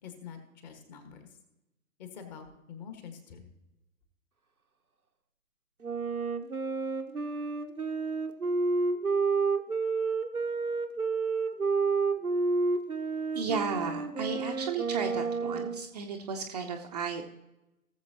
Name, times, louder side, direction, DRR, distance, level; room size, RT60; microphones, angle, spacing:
voice 1, 0.0-1.3 2.0-3.5, left 7 dB, 30° left, 5 dB, 1.7 m, -46 dB
Wind instrument woodwind instrument, 5.8-15.9, right 4 dB, 90° right, 1.0 m, -30 dB
voice 2, 13.3-17.2, right 5 dB, 30° right, 2 dB, 0.7 m, -34 dB
18.0 x 7.3 x 2.9 m, 0.94 s
figure-of-eight pair, 125°, 43 cm